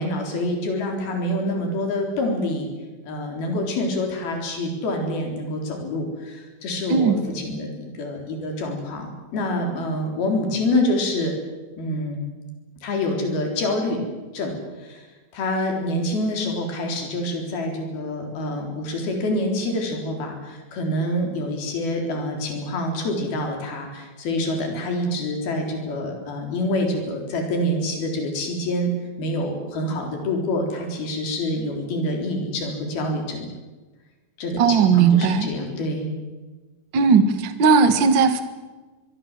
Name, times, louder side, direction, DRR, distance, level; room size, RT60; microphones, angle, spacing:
voice 1, 0.0-2.7 3.1-11.3 11.8-12.2 12.8-14.0 14.3-15.0 15.3-28.9 29.2-33.5 34.4-36.1, left 1 dB, 85° left, 2 dB, 5.8 m, -26 dB
voice 2, 34.6-35.5 36.9-38.4, right 5 dB, 45° right, 10 dB, 1.7 m, -17 dB
24.0 x 22.0 x 7.5 m, 1.3 s
omnidirectional pair, 4.2 m